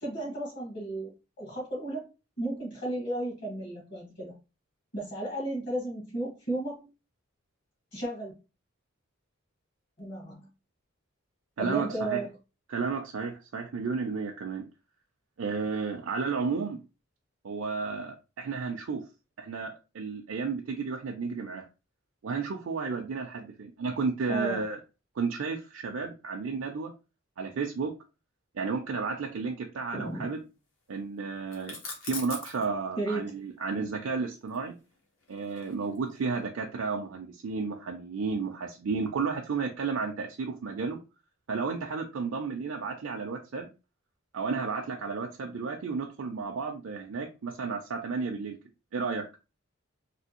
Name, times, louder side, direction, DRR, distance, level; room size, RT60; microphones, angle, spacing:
voice 1, 0.0-2.1 2.4-4.3 4.9-6.9 7.9-8.3 10.0-10.5 11.6-12.3 24.3-24.6 29.9-30.3 33.0-33.2, right 1 dB, 55° left, -2 dB, 1.5 m, -34 dB
voice 2, 11.6-12.2 12.7-14.6 15.4-16.8 17.4-19.0 19.4-21.7 22.2-24.8 25.2-26.9 27.4-27.9 28.5-30.4 30.9-31.7 32.0-34.7 35.3-41.0 41.5-43.7 44.3-48.6 48.9-49.2, right 4 dB, 70° right, 1 dB, 0.4 m, -32 dB
sound 1, 31.5-32.6 34.5-36.1, left 3 dB, 75° left, 1.1 m, -41 dB
3.3 x 2.7 x 2.9 m, 0.30 s
head